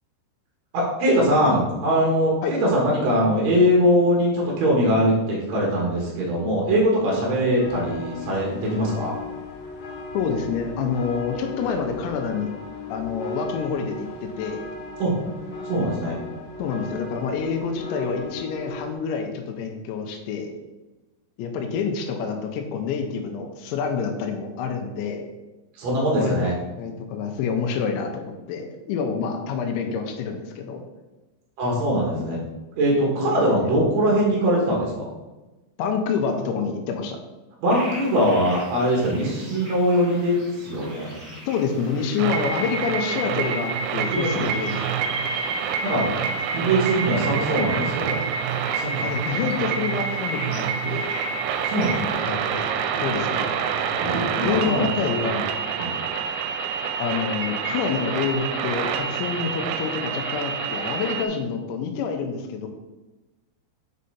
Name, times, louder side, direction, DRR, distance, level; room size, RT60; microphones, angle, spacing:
voice 1, 0.7-9.1 15.0-15.1 15.6-16.2 25.7-26.6 31.6-32.4 32.8-35.1 37.6-41.1 44.1-44.5 45.8-46.1 46.5-48.2 48.8-49.1 51.6-52.1 53.9-54.9 55.2-55.4 55.7-56.0, equal, 70° right, -3 dB, 1.7 m, -22 dB
sound 1, 7.6-18.9, left 3 dB, 65° left, 2.4 m, -37 dB
voice 2, 10.1-12.5 12.9-14.6 16.6-20.5 21.4-25.3 26.2-26.5 26.8-30.8 33.2-33.7 35.8-37.2 41.5-44.8 49.0-51.1 52.3-52.7 53.0-53.5 54.4-55.4 57.0-62.7, left 6 dB, 85° left, 4 dB, 3.0 m, -27 dB
sound 2, 37.7-52.2, right 2 dB, 35° right, 2.5 m, -40 dB
sound 3, 42.2-61.3, right 6 dB, 85° right, 2.8 m, -27 dB
6.4 x 5.5 x 4.1 m, 1.1 s
omnidirectional pair, 5.3 m